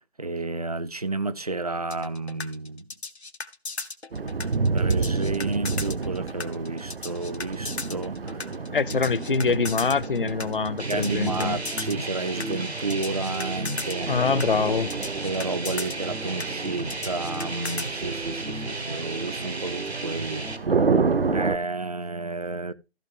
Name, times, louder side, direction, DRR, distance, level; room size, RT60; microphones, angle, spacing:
voice 1, 0.2-2.8 4.7-8.5 10.9-14.1 15.2-20.4 21.3-22.7, right 3 dB, 35° right, 0.5 m, -31 dB
sound 1, 1.9-17.9, left 3 dB, 85° left, 1.2 m, -36 dB
sound 2, 4.1-21.6, right 4 dB, 60° right, 0.9 m, -30 dB
voice 2, 8.7-11.6 14.1-14.9, left 5 dB, 55° left, 0.6 m, -24 dB
sound 3, 10.8-20.6, right 2 dB, 80° right, 1.6 m, -33 dB
14.5 x 5.5 x 3.7 m
figure-of-eight pair, 155°, 32 cm